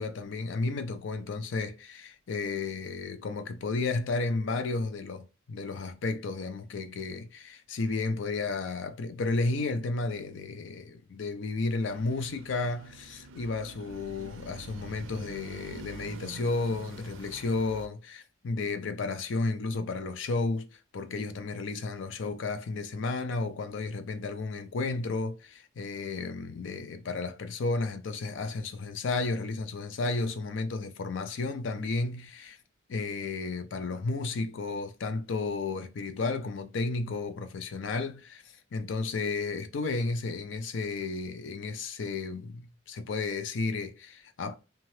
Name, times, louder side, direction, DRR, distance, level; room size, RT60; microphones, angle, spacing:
voice 1, 0.0-32.6 32.9-44.6, left 3 dB, 70° left, 0.4 m, -33 dB
sound 1, 11.9-17.9, right 3 dB, 85° right, 0.4 m, -46 dB
2.8 x 2.3 x 3.1 m
head